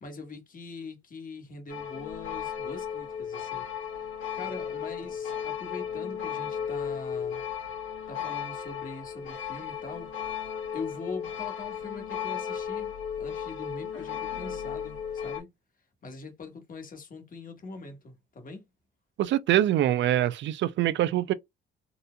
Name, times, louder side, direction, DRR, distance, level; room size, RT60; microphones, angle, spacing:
voice 1, 0.0-3.7 3.9-4.1 4.3-7.4 8.1-10.1 10.7-15.5 16.0-18.7, left 3 dB, 45° left, 1.3 m, -42 dB
sound 1, 1.7-15.4, left 8 dB, 85° left, 1.7 m, -35 dB
voice 2, 19.2-21.3, right 12 dB, 70° right, 0.4 m, -24 dB
3.9 x 2.7 x 2.2 m
cardioid pair, 90°, 20 cm